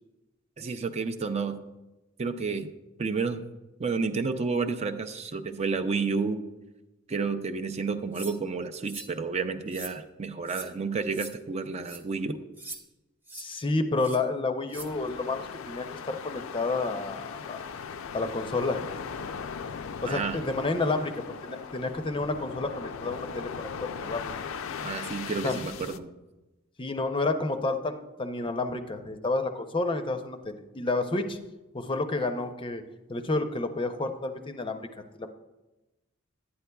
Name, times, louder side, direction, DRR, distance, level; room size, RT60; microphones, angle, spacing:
voice 1, 0.6-1.6 2.2-2.7 3.0-3.4 3.8-6.4 7.1-12.4 20.1-20.4 24.8-26.1, right 4 dB, 30° right, 8 dB, 0.4 m, -30 dB
sound 1, 8.1-8.4 8.8-9.1 9.7-10.0 10.5-10.7 11.1-11.3 11.8-12.0 12.6-12.8 13.3-13.5 14.0-14.2 14.7-14.9, right 2 dB, 10° right, 0.9 m, -42 dB
voice 2, 13.3-17.6 18.1-18.9 20.0-23.5 23.8-24.3 25.4-25.6 26.8-31.4 31.7-32.8 33.1-34.9 35.2-35.3, left 3 dB, 25° left, 8 dB, 0.5 m, -30 dB
sound 2, 14.7-26.0, left 6 dB, 70° left, 0.4 m, -39 dB
11.0 x 9.5 x 2.3 m, 1.0 s
head